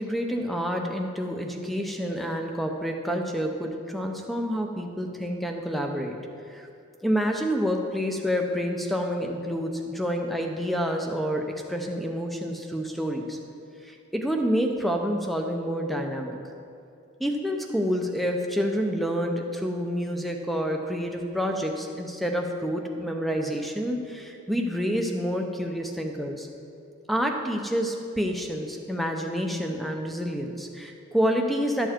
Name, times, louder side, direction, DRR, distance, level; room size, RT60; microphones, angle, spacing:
voice 1, 0.0-6.2 6.5-6.7 7.0-13.4 13.8-16.4 17.2-26.5 27.1-31.9, equal, ahead, 3 dB, 0.7 m, -28 dB
12.5 x 7.1 x 4.4 m, 2.5 s
head